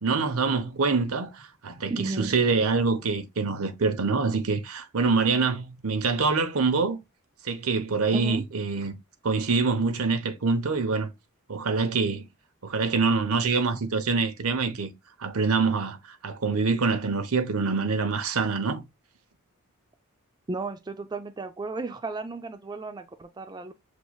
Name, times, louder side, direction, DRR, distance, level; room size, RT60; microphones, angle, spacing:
voice 1, 0.0-7.0 7.4-8.9 9.2-11.1 11.5-12.3 12.6-14.9 15.2-18.8, right 4 dB, 80° right, 0.9 m, -25 dB
voice 2, 1.9-2.3 8.1-8.4 20.5-23.7, right 3 dB, 20° right, 0.3 m, -34 dB
6.6 x 3.1 x 2.3 m
head